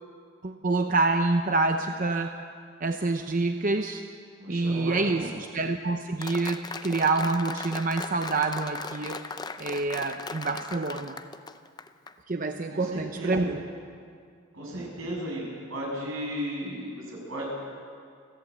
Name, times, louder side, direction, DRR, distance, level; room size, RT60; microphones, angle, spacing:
voice 1, 0.4-2.3 2.8-4.0 4.5-9.2 9.6-11.2 12.3-13.6, right 3 dB, 40° right, 5 dB, 0.7 m, -27 dB
voice 2, 4.4-5.3 12.7-13.5 14.5-15.4 15.7-17.5, equal, 80° right, -2 dB, 7.3 m, -35 dB
Applause, 6.2-12.1, left 4 dB, 20° left, 0.6 m, -38 dB
29.5 x 11.0 x 8.6 m, 2.2 s
head